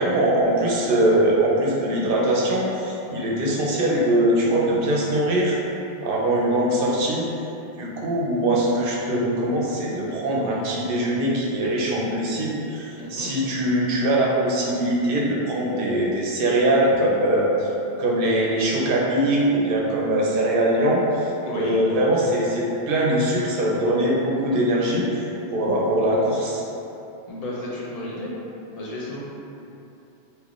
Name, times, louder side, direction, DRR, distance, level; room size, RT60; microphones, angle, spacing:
voice 1, 0.0-5.6 6.0-7.3 7.8-17.7 18.0-21.3 21.5-25.2 25.5-26.6, right 1 dB, 65° right, -4 dB, 0.7 m, -22 dB
voice 2, 13.0-13.3 21.5-21.8 27.3-28.3 28.7-29.2, left 1 dB, 45° left, -6 dB, 0.6 m, -32 dB
3.5 x 2.7 x 2.4 m, 2.8 s
omnidirectional pair, 1.1 m